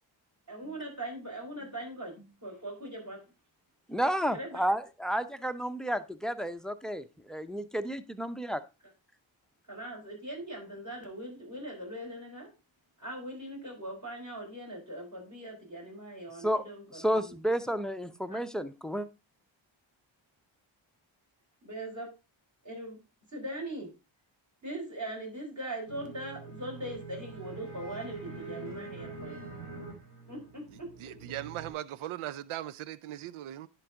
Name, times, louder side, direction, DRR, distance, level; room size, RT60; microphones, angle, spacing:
voice 1, 0.5-3.3 4.3-4.6 9.7-12.5 13.0-17.4 18.3-18.4 21.6-22.1 22.6-23.0 23.3-23.9 24.6-29.4 30.3-31.1, right 1 dB, 35° right, 5.0 m, -41 dB
voice 2, 3.9-8.6 16.4-16.6 16.9-19.1, equal, ahead, 0.6 m, -31 dB
sound 1, 25.9-31.7, right 4 dB, 55° right, 3.5 m, -44 dB
voice 3, 31.0-33.7, right 13 dB, 85° right, 0.6 m, -39 dB
11.0 x 4.6 x 3.6 m
cardioid pair, 65°, 48 cm